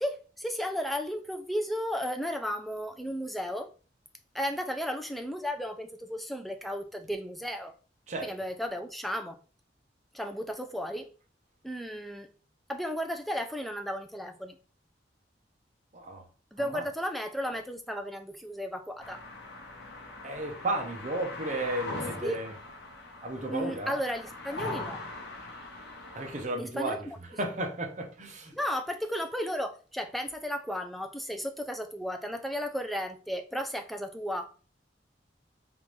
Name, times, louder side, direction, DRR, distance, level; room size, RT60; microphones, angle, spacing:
voice 1, 0.0-3.7 4.3-7.7 8.2-9.4 10.1-11.1 11.6-12.3 12.7-14.6 16.5-19.3 22.2-22.4 23.5-25.0 26.6-27.0 28.5-34.5, equal, ahead, 0.3 m, -34 dB
voice 2, 15.9-16.3 16.6-16.9 20.2-22.5 23.2-24.0 26.1-28.5, right 2 dB, 40° right, 0.7 m, -34 dB
sound 1, 19.0-26.4, left 2 dB, 70° left, 0.9 m, -41 dB
3.5 x 2.5 x 3.1 m
head